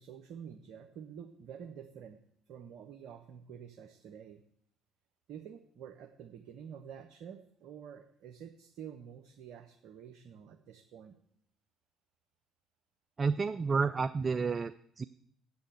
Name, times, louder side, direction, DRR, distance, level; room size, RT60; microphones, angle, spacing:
voice 1, 0.0-2.2 2.5-4.4 5.3-11.2, right 8 dB, 60° right, 6 dB, 0.7 m, -49 dB
voice 2, 13.2-15.0, right 4 dB, 35° right, 14 dB, 0.3 m, -30 dB
7.4 x 7.0 x 7.9 m, 0.70 s
figure-of-eight pair, 50°, 0 cm